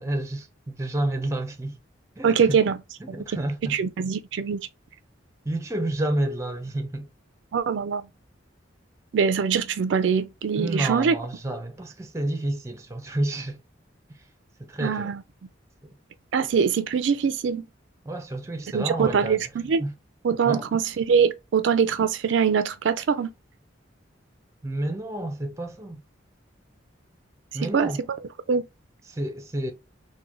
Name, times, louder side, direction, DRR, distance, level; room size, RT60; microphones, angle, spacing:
voice 1, 0.0-1.8 2.2-2.6 3.0-3.8 5.5-7.1 10.6-13.6 14.6-15.1 15.8-15.9 18.0-19.5 19.8-19.9 20.4-20.7 24.6-26.0 27.5-28.0 29.1-29.7, right 1 dB, 15° right, 0.6 m, -30 dB
voice 2, 2.2-2.8 3.1-3.2 3.6-4.6 7.5-8.0 9.1-11.2 14.8-15.2 16.3-17.6 18.7-19.8 20.2-23.3 27.7-27.9 28.5-28.6, right 6 dB, 70° right, 0.4 m, -23 dB
3.7 x 2.2 x 2.9 m
head